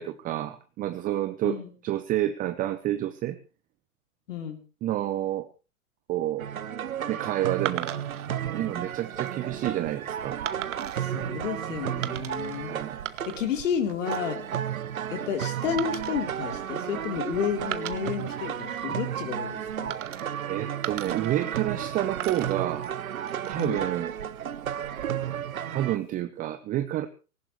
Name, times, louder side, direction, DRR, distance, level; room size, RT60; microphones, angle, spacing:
voice 1, 0.0-3.4 4.8-5.5 6.1-6.5 7.1-7.9 8.5-10.4 12.7-13.1 20.5-22.9 23.5-24.1 25.7-27.1, right 13 dB, 20° right, 10 dB, 0.8 m, -29 dB
voice 2, 4.3-4.6 11.0-12.8 13.3-14.4 15.1-19.9 23.6-23.8, left 8 dB, 60° left, 5 dB, 4.0 m, -31 dB
sound 1, 6.4-26.0, right 9 dB, 80° right, 1.0 m, -33 dB
sound 2, 7.7-8.3 9.0-9.3 10.5-11.1 12.0-12.6 12.9-13.6 13.9-14.3 15.8-17.2 17.6-18.9 19.9-20.5 20.8-21.9 22.2-23.9 24.8-25.4, right 12 dB, 60° right, 1.4 m, -39 dB
19.0 x 18.0 x 3.3 m, 0.33 s
hypercardioid pair, 120°, 42 cm